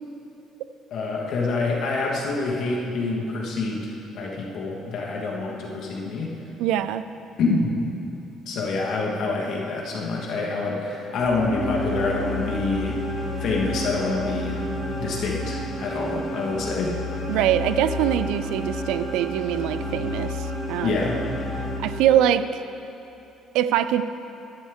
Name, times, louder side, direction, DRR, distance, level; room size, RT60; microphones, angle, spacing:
voice 1, 0.9-6.3 7.4-7.8 8.5-13.0 13.4-14.6 14.9-17.0 20.8-21.2, left 3 dB, 65° left, -2 dB, 1.4 m, -26 dB
voice 2, 6.6-7.0 17.3-21.0 21.8-22.6 23.5-24.0, right 11 dB, 85° right, 12 dB, 0.4 m, -23 dB
sound 1, 11.1-22.5, left 1 dB, 25° left, 1.7 m, -30 dB
11.5 x 10.5 x 3.6 m, 2.8 s
cardioid pair, 120°, 0 cm